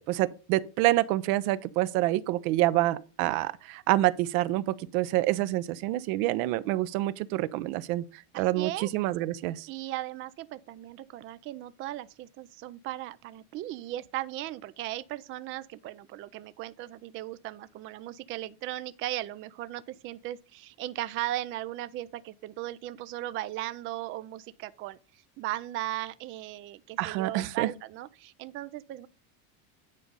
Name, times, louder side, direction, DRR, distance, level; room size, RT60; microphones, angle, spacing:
voice 1, 0.0-9.7 27.0-27.7, right 16 dB, 65° right, 0.8 m, -27 dB
voice 2, 8.3-8.9 9.7-29.1, right 14 dB, 30° right, 0.4 m, -37 dB
9.8 x 5.0 x 5.3 m
supercardioid pair, 135°, 46 cm